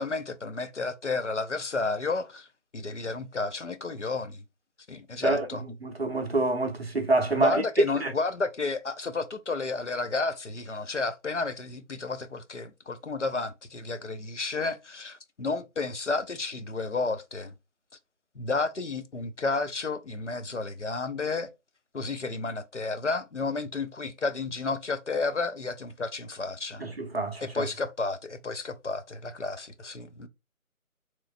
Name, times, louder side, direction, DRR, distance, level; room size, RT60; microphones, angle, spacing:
voice 1, 0.0-2.5 2.7-4.4 4.9-5.6 7.4-17.5 18.4-21.5 21.9-26.9 27.4-30.3, left 3 dB, 55° left, 0.5 m, -31 dB
voice 2, 5.2-7.6 8.0-8.1 26.8-27.6, right 2 dB, 45° right, 0.6 m, -27 dB
3.1 x 3.0 x 2.5 m
figure-of-eight pair, 160°, 43 cm